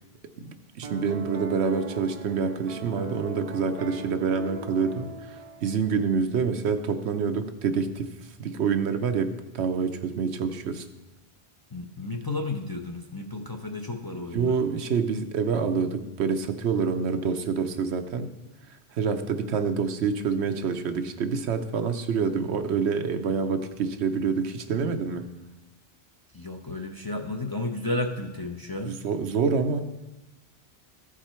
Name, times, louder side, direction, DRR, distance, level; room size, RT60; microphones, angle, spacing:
voice 1, 0.4-8.1 8.4-10.8 14.1-18.3 18.9-25.3 28.9-29.8, right 5 dB, 85° right, 7 dB, 1.0 m, -27 dB
Piano, 0.8-6.1, right 3 dB, 45° right, 0.6 m, -39 dB
voice 2, 11.7-14.5 26.3-29.0, left 2 dB, 30° left, 2 dB, 0.5 m, -32 dB
14.5 x 4.9 x 4.3 m, 1.0 s
omnidirectional pair, 1.1 m